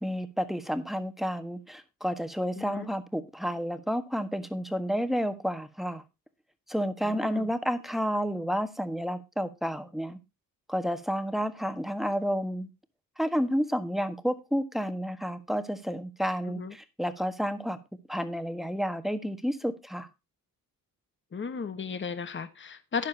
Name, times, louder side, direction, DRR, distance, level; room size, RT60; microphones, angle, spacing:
voice 1, 0.0-6.0 6.7-10.2 10.7-12.7 13.2-17.8 18.1-20.1, equal, ahead, 1.5 m, -30 dB
voice 2, 2.6-2.9 7.0-7.5 16.5-16.7 21.3-23.1, left 6 dB, 35° left, 1.3 m, -35 dB
12.5 x 10.5 x 2.8 m
cardioid pair, 105°, 35 cm